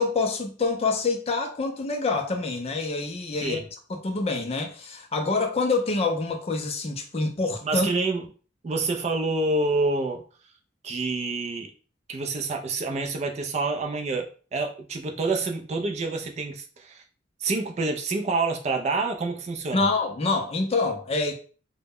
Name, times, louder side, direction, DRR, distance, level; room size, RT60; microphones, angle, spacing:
voice 1, 0.0-3.6 3.9-7.9 19.7-21.3, left 3 dB, 30° left, 0.4 m, -26 dB
voice 2, 7.6-8.2 8.6-10.2 10.8-11.7 12.1-17.0 17.4-19.9, right 3 dB, 35° right, 0.3 m, -27 dB
2.1 x 2.0 x 3.4 m
head